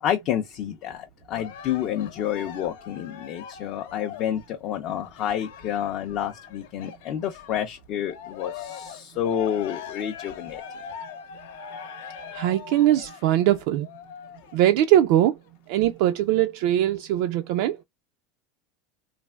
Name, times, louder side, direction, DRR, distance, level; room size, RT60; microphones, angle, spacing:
voice 1, 0.0-10.6, left 10 dB, 40° left, 0.4 m, -29 dB
Cheering, 1.3-7.7 8.0-14.6 15.2-15.3, left 8 dB, 85° left, 0.8 m, -41 dB
voice 2, 12.3-13.9 14.5-15.4 15.7-17.8, right 12 dB, 55° right, 0.3 m, -21 dB
3.2 x 2.5 x 2.2 m
supercardioid pair, 160°, 0 cm